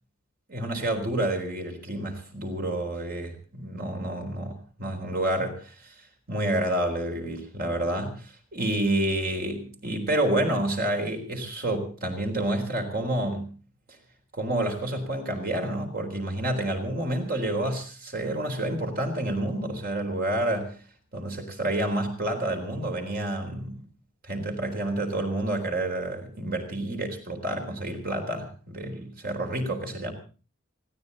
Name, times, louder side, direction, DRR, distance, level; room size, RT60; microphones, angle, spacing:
voice 1, 0.5-5.9 6.3-13.5 14.3-20.7 21.1-23.8 24.2-30.1, right 1 dB, 45° right, 5 dB, 3.9 m, -29 dB
20.0 x 16.0 x 4.1 m, 0.36 s
head